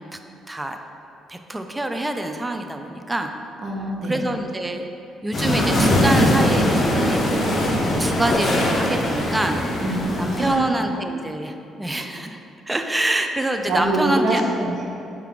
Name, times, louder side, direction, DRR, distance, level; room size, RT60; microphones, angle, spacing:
voice 1, 0.5-0.8 1.3-3.3 4.0-4.9 5.2-7.2 7.5-9.8 10.2-12.4 12.7-14.4, right 1 dB, 15° right, 5 dB, 0.3 m, -26 dB
voice 2, 3.6-4.2 9.8-10.6 13.7-15.0, right 2 dB, 55° right, -2 dB, 0.7 m, -24 dB
sound 1, 5.3-10.5, left 1 dB, 40° left, 0.6 m, -20 dB
4.4 x 2.3 x 3.7 m, 2.7 s
supercardioid pair, 75°, 0 cm